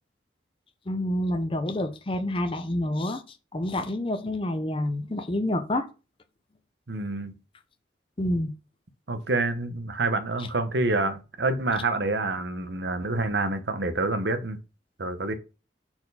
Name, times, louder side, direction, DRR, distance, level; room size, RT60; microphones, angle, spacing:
voice 1, 0.9-5.9 8.2-8.5 10.4-10.5, left 1 dB, 30° left, 0.6 m, -28 dB
voice 2, 6.9-7.4 9.1-14.6 15.0-15.3, right 2 dB, 70° right, 0.9 m, -27 dB
4.4 x 4.4 x 5.4 m
head